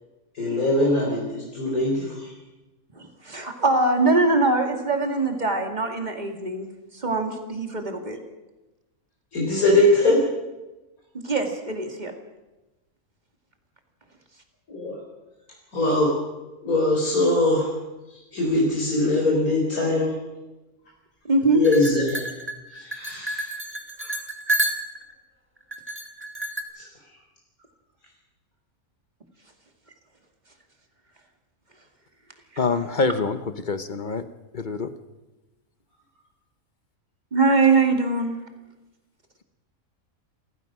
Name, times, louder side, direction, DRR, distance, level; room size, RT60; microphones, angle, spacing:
voice 1, 0.3-2.3 9.3-10.2 14.7-15.0 15.7-16.2 16.6-17.7 18.3-20.2 21.5-22.3 22.7-23.5 24.0-24.1 26.7-27.2, left 1 dB, 75° left, -2 dB, 4.6 m, -22 dB
voice 2, 2.9-6.7 6.9-8.2 11.1-12.1 21.2-21.6 37.3-38.4, right 3 dB, 30° right, 4 dB, 2.5 m, -22 dB
sound 1, 21.6-25.1 25.7-26.6, right 1 dB, 10° right, 1.9 m, -29 dB
voice 3, 32.6-33.4 33.7-34.2 34.5-34.9, left 4 dB, 35° left, 11 dB, 1.0 m, -25 dB
28.0 x 15.0 x 6.2 m, 1.1 s
omnidirectional pair, 1.5 m